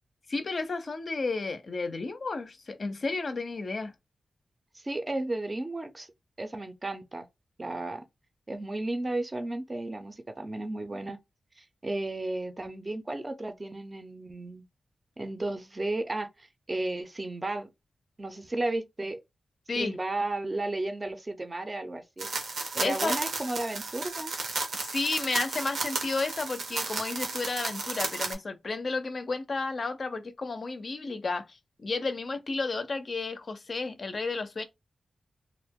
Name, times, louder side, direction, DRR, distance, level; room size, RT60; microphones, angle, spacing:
voice 1, 0.3-3.9 19.7-20.0 22.8-23.2 24.7-34.6, left 3 dB, 50° left, 0.4 m, -32 dB
voice 2, 4.7-6.1 6.4-7.3 7.6-8.0 8.5-11.2 11.6-14.6 15.2-17.7 18.2-19.2 19.8-22.3 22.7-24.3, right 2 dB, 25° right, 0.4 m, -33 dB
sound 1, 22.2-28.3, right 3 dB, 85° right, 0.7 m, -33 dB
2.3 x 2.1 x 3.5 m
wide cardioid pair, 100°, 0 cm